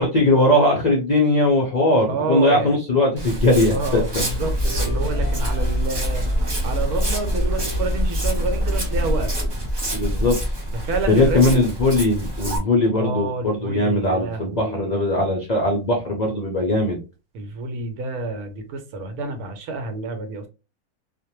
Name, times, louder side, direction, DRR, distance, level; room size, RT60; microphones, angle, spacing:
voice 1, 0.0-4.2 9.9-10.4 11.1-17.0, left 1 dB, 70° left, 0.4 m, -19 dB
voice 2, 2.1-2.8 3.7-6.3 6.6-9.5 10.7-11.5 12.9-15.0 17.3-20.5, right 3 dB, 85° right, 1.2 m, -29 dB
Walk footsteps, 3.2-12.6, equal, 40° right, 0.3 m, -28 dB
sound 1, 4.3-9.5, equal, 10° right, 0.7 m, -24 dB
2.5 x 2.1 x 2.9 m
omnidirectional pair, 1.6 m